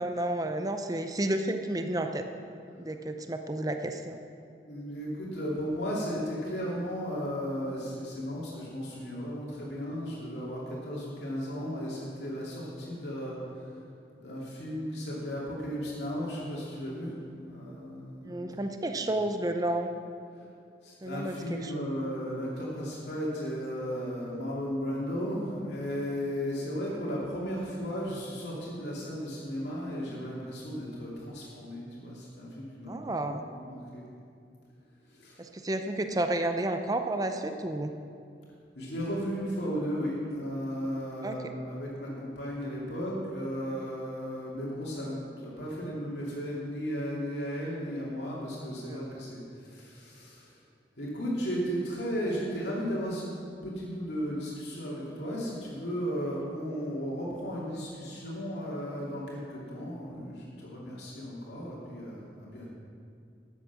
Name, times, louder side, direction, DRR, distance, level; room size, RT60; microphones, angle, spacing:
voice 1, 0.0-2.3 2.8-4.2 18.2-19.9 21.0-21.9 32.9-33.4 35.4-37.9 41.2-41.5 48.8-49.2, right 1 dB, 20° right, 6 dB, 0.6 m, -31 dB
voice 2, 4.6-13.8 14.2-18.5 18.9-19.0 20.3-20.5 20.8-33.1 33.5-34.1 35.1-35.4 38.7-50.6 51.0-53.3 53.6-62.7, equal, 70° left, -6 dB, 2.7 m, -35 dB
13.5 x 8.4 x 6.1 m, 2.4 s
head